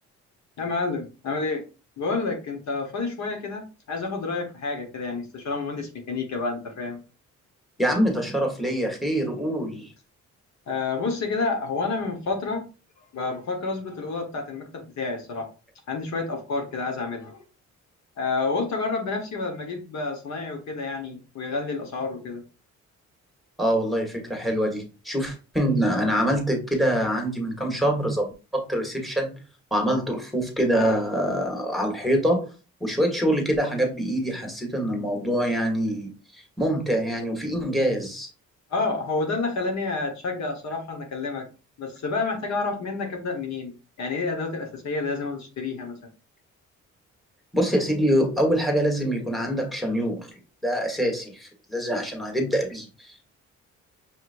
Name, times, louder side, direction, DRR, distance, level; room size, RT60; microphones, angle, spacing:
voice 1, 0.6-1.7 2.0-7.0 10.7-12.6 13.1-15.5 15.9-17.4 18.2-22.4 38.7-41.5 41.8-43.7 44.0-46.0, left 3 dB, 65° left, 3 dB, 1.4 m, -29 dB
voice 2, 7.8-9.9 23.6-29.3 29.7-32.5 32.8-36.1 36.6-38.3 47.5-50.3 50.6-53.3, equal, ahead, 2 dB, 1.5 m, -25 dB
6.3 x 2.9 x 2.6 m, 0.32 s
cardioid pair, 90°, 30 cm